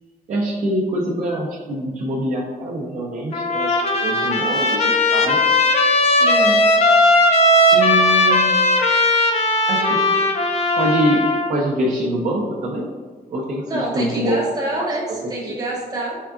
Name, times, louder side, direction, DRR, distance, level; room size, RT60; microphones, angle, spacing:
voice 1, 0.3-5.4 7.7-8.5 9.7-10.0 10.7-12.9 13.3-14.4 14.8-14.9 15.4-15.6, equal, 50° right, -4 dB, 0.4 m, -24 dB
Trumpet, 3.3-11.5, left 1 dB, 40° left, 0.4 m, -17 dB
voice 2, 6.0-6.6 13.6-16.2, right 2 dB, 25° right, -4 dB, 0.8 m, -27 dB
3.6 x 3.3 x 2.4 m, 1.4 s
wide cardioid pair, 160°, 16 cm